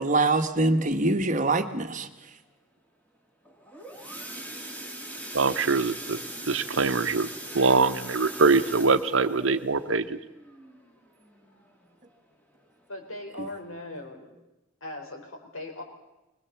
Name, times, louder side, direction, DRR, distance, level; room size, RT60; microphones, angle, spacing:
voice 1, 0.0-2.1, right 2 dB, 35° right, 7 dB, 1.3 m, -24 dB
sound 1, 3.4-12.1 12.5-12.8 13.1-13.2 13.7-13.8, right 1 dB, 10° left, 2.9 m, -41 dB
voice 2, 5.3-6.2 6.5-7.3 7.5-10.2, right 4 dB, 65° right, 11 dB, 0.9 m, -23 dB
voice 3, 12.9-14.3 14.8-15.8, left 1 dB, 85° left, 3 dB, 4.6 m, -39 dB
21.5 x 21.0 x 7.1 m, 1.0 s
head